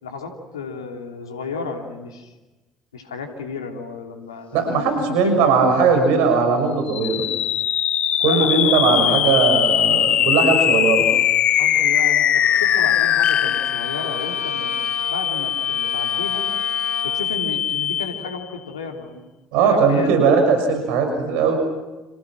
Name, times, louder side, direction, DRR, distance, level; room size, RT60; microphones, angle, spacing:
voice 1, 0.0-2.3 2.9-5.6 8.2-9.2 11.6-14.7 15.0-16.4 17.0-19.2 19.6-20.1, left 5 dB, 85° left, 4 dB, 3.1 m, -32 dB
voice 2, 4.5-7.2 8.2-11.1 19.5-21.6, right 5 dB, 70° right, 5 dB, 6.4 m, -18 dB
sound 1, 6.9-18.4, left 10 dB, 50° left, 1.1 m, -21 dB
Bowed string instrument, 12.3-17.3, left 5 dB, 65° left, 6.8 m, -35 dB
30.0 x 28.0 x 6.1 m, 1.1 s
hypercardioid pair, 60°, 2 cm